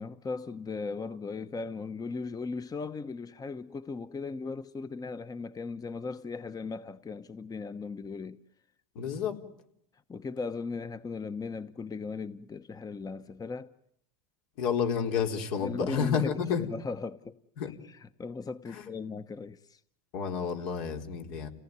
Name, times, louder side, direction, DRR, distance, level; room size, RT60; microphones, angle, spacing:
voice 1, 0.0-8.4 10.1-13.7 15.6-17.4 17.9-19.8, left 4 dB, 20° left, 1.0 m, -37 dB
voice 2, 8.9-9.4 14.6-16.7 17.6-17.7 18.7-18.9 20.1-21.5, left 7 dB, 70° left, 4.2 m, -30 dB
30.0 x 18.0 x 9.5 m
supercardioid pair, 100°, 19 cm